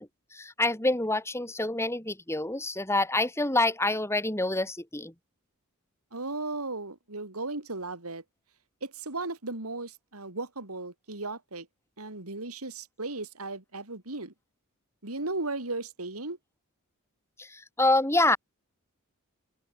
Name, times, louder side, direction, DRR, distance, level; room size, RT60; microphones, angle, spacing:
voice 1, 0.0-5.1 17.4-18.4, left 2 dB, 10° left, 5.5 m, -27 dB
voice 2, 6.1-8.2 8.8-11.7 12.0-14.3 15.0-16.4, right 2 dB, 85° right, 3.6 m, -36 dB
open air
head